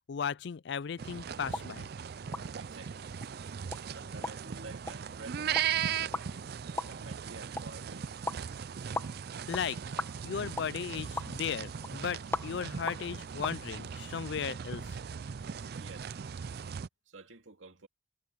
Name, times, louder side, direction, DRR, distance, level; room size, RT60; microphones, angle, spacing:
voice 1, 0.1-1.9 9.5-9.8 10.2-15.0, left 7 dB, 55° left, 0.4 m, -36 dB
sound 1, 1.0-16.9, right 8 dB, 50° right, 0.4 m, -38 dB
sound 2, 1.4-13.6, left 2 dB, 10° left, 1.4 m, -42 dB
voice 2, 2.6-3.1 3.9-5.6 6.0-6.5 6.9-8.1 15.8-16.1 17.1-17.9, right 3 dB, 70° right, 2.3 m, -50 dB
head